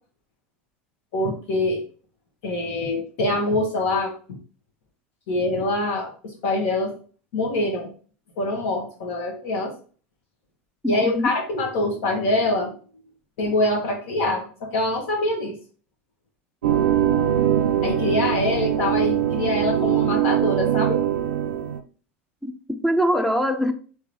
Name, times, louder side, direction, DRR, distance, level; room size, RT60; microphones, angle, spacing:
voice 1, 1.1-1.8 2.4-4.1 5.3-6.9 7.3-7.9 8.4-9.7 10.9-12.7 13.4-15.5 17.8-21.0, left 2 dB, 65° left, 1.3 m, -24 dB
voice 2, 10.8-11.3 22.4-23.7, equal, 5° left, 0.5 m, -23 dB
sound 1, 16.6-21.8, right 10 dB, 85° right, 0.5 m, -22 dB
3.7 x 3.0 x 3.1 m
hypercardioid pair, 90°, 7 cm